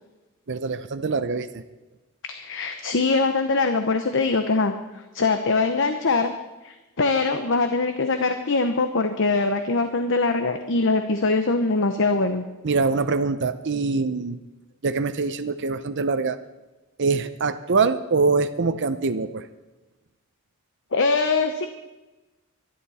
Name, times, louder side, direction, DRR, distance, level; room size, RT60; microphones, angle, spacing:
voice 1, 0.5-1.6 12.6-14.4 14.8-16.4 17.0-19.4, right 4 dB, 55° right, 10 dB, 0.7 m, -24 dB
voice 2, 2.3-4.7 5.1-6.3 6.6-12.4 20.9-21.7, left 3 dB, 60° left, 7 dB, 0.9 m, -22 dB
23.5 x 11.5 x 4.3 m, 1.1 s
head